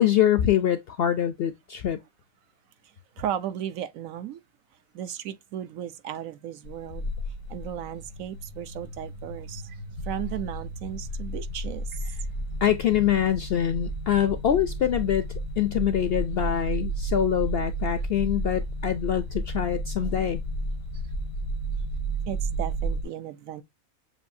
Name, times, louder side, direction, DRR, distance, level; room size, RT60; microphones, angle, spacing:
voice 1, 0.0-2.0 12.6-15.2 15.6-20.4, left 10 dB, 65° left, 0.6 m, -24 dB
voice 2, 3.2-4.4 4.9-7.1 7.5-9.8 10.1-11.8 22.3-23.6, right 10 dB, 75° right, 1.0 m, -35 dB
sound 1, 6.7-23.0, right 1 dB, 90° left, 1.4 m, -32 dB
7.2 x 2.7 x 2.6 m
omnidirectional pair, 1.5 m